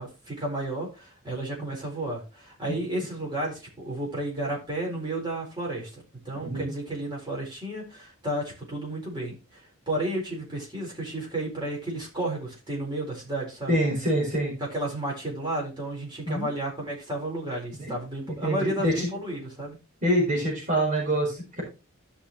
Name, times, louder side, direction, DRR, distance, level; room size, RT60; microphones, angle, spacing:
voice 1, 0.0-9.6 9.9-13.8 14.6-19.8, right 1 dB, 20° right, -3 dB, 4.3 m, -32 dB
voice 2, 6.4-6.7 13.7-14.5 16.2-16.5 17.9-18.0 18.3-18.9 20.0-21.6, right 1 dB, 35° right, -2 dB, 4.6 m, -25 dB
13.5 x 6.0 x 3.1 m, 0.30 s
head